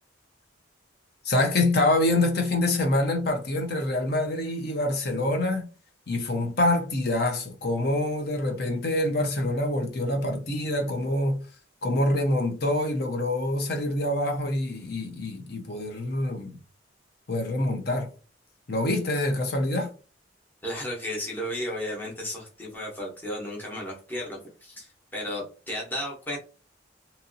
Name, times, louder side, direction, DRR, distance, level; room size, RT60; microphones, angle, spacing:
voice 1, 1.2-5.7 6.1-11.4 11.8-16.6 17.3-18.1 18.7-19.9, left 1 dB, 55° left, 0.6 m, -26 dB
voice 2, 20.6-26.4, left 1 dB, 10° left, 0.9 m, -34 dB
2.9 x 2.7 x 2.6 m
head